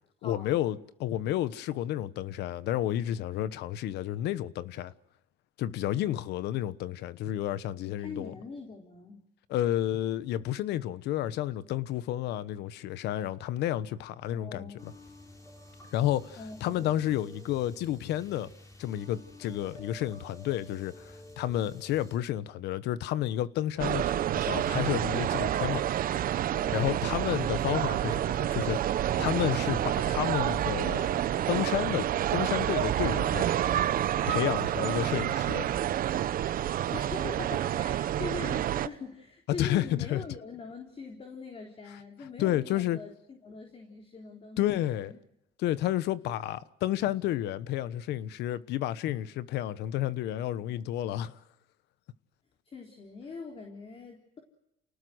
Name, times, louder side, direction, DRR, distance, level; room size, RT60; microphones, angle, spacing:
voice 1, 0.2-4.9 5.6-8.3 9.5-14.9 15.9-18.5 18.8-25.8 26.3-31.1 31.5-33.5 34.3-35.7 39.6-40.2 42.4-43.0 44.6-45.1 45.6-51.4, left 13 dB, 80° left, 1.2 m, -31 dB
voice 2, 8.0-9.2 14.3-14.8 16.4-16.9 26.6-27.0 36.9-45.2 52.7-54.4, left 4 dB, 35° left, 4.0 m, -42 dB
sound 1, 14.8-22.2, left 1 dB, 20° left, 5.5 m, -50 dB
sound 2, 23.8-38.9, right 11 dB, 60° right, 1.0 m, -28 dB
29.5 x 19.0 x 8.0 m
cardioid pair, 110°, 17 cm